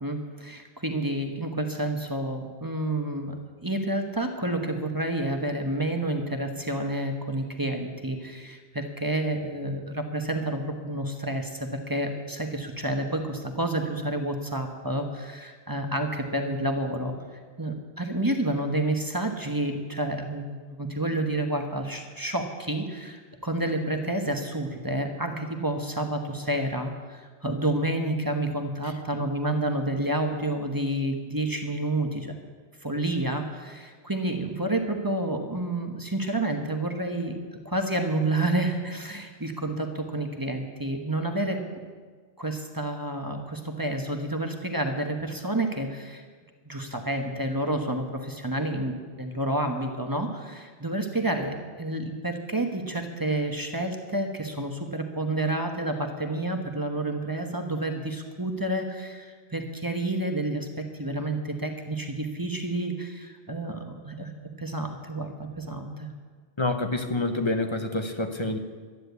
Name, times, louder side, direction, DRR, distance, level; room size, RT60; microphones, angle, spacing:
voice 1, 0.0-17.1 17.6-32.4 32.8-37.4 37.6-41.6 42.4-46.2 46.6-64.3 64.6-66.1, right 1 dB, 20° right, 4 dB, 1.1 m, -29 dB
voice 2, 66.6-68.6, left 2 dB, 25° left, 6 dB, 0.9 m, -27 dB
12.5 x 10.0 x 8.1 m, 1.5 s
omnidirectional pair, 1.1 m